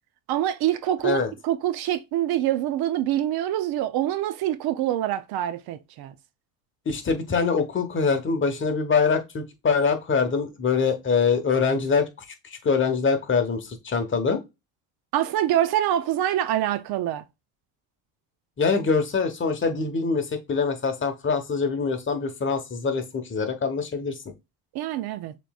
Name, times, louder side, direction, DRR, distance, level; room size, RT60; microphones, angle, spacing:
voice 1, 0.3-6.1 15.1-17.2 24.7-25.4, right 12 dB, 60° right, 0.6 m, -25 dB
voice 2, 6.8-12.1 12.6-14.4 18.6-24.2, left 5 dB, 30° left, 1.1 m, -24 dB
6.7 x 3.2 x 2.3 m
cardioid pair, 110°, 42 cm